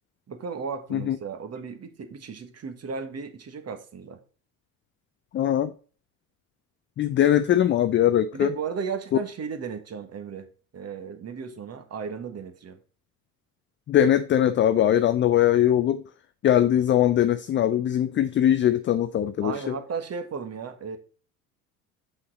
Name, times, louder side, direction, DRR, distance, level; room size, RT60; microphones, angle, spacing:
voice 1, 0.3-4.2 8.3-10.5 10.7-12.8 19.4-21.0, right 5 dB, 35° right, 1.4 m, -35 dB
voice 2, 5.3-5.7 7.0-8.5 13.9-16.0 16.4-19.7, left 11 dB, 25° left, 0.5 m, -21 dB
6.6 x 5.6 x 3.9 m
hypercardioid pair, 70°, 45 cm